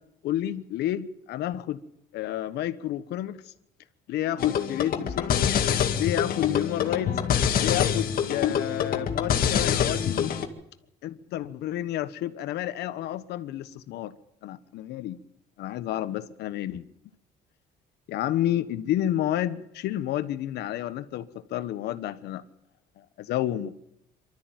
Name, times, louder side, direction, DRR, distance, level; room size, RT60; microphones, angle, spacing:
voice 1, 0.2-1.8 2.1-3.5 4.1-5.6 5.9-7.2 7.6-10.3 11.0-14.1 14.4-15.2 15.6-16.8 18.1-22.4 23.0-23.7, left 12 dB, 80° left, 12 dB, 1.3 m, -30 dB
sound 1, 4.4-10.4, left 8 dB, 60° left, 2.1 m, -25 dB
24.5 x 13.0 x 9.2 m, 0.81 s
cardioid pair, 110°, 17 cm